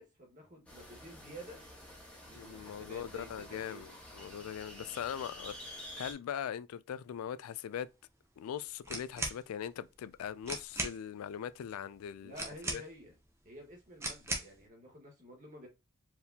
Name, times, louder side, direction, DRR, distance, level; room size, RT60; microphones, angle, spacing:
voice 1, 0.0-1.6 2.2-3.8 12.2-13.1 13.4-15.7, equal, 35° right, 1.5 m, -51 dB
sound 1, 0.7-6.1, left 1 dB, 5° left, 1.3 m, -49 dB
voice 2, 2.3-7.9 8.4-12.3 12.7-12.8, left 9 dB, 80° left, 0.3 m, -41 dB
sound 2, 8.8-9.4 10.1-10.2 10.4-11.0 12.3-13.1 14.0-14.6, right 2 dB, 10° right, 0.7 m, -38 dB
4.6 x 3.5 x 2.8 m
head